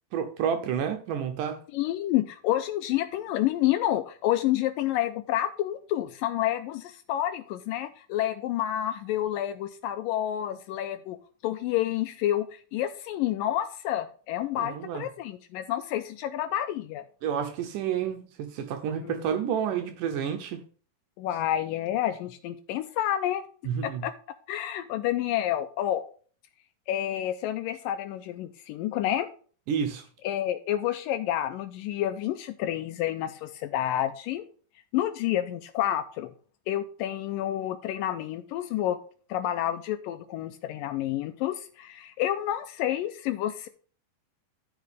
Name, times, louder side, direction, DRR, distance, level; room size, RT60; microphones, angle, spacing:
voice 1, 0.1-1.6 14.6-15.0 17.2-20.6 23.6-24.0 29.7-30.1, right 8 dB, 75° right, 2.1 m, -30 dB
voice 2, 1.7-11.2 11.4-17.0 19.0-19.2 21.2-23.5 23.8-24.1 24.5-26.0 26.9-29.3 30.2-34.4 34.9-36.3 36.7-39.0 39.3-43.7, left 12 dB, 80° left, 2.1 m, -29 dB
13.5 x 5.1 x 3.4 m
omnidirectional pair, 4.3 m